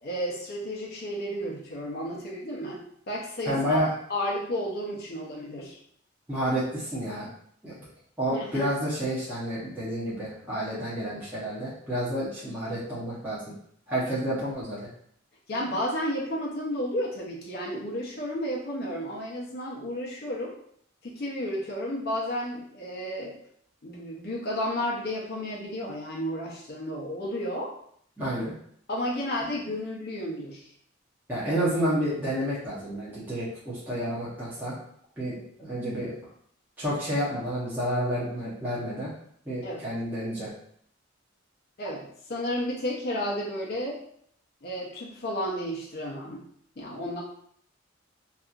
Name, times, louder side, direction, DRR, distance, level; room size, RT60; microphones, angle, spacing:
voice 1, 0.0-3.8 4.1-5.8 8.3-8.7 15.5-20.6 21.0-23.3 23.8-27.7 28.9-30.7 39.6-39.9 41.8-44.0 44.6-46.4 46.8-47.2, equal, 50° left, -4 dB, 0.5 m, -32 dB
voice 2, 3.5-3.9 6.3-7.3 7.6-7.9 8.2-13.4 13.9-14.9 28.2-28.5 31.3-34.8 35.2-36.1 36.8-39.1 39.5-40.5, equal, 10° right, -10 dB, 0.7 m, -30 dB
2.7 x 2.4 x 2.4 m, 0.65 s
head